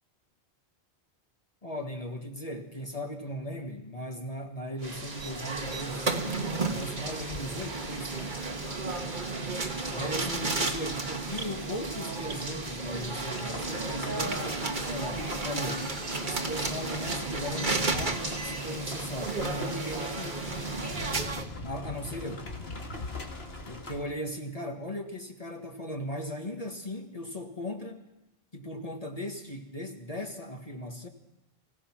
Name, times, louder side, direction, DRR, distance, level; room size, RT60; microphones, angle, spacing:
voice 1, 1.6-8.4 9.9-15.9 16.2-20.9 21.6-22.5 23.7-28.1 28.5-31.1, equal, 35° left, 2 dB, 1.8 m, -38 dB
sound 1, 4.8-21.4, right 3 dB, 50° right, 1.7 m, -33 dB
sound 2, 4.8-21.3, right 2 dB, 80° right, 3.4 m, -42 dB
sound 3, 13.3-24.0, left 2 dB, 75° left, 2.4 m, -42 dB
25.5 x 16.5 x 6.1 m, 0.96 s
omnidirectional pair, 1.0 m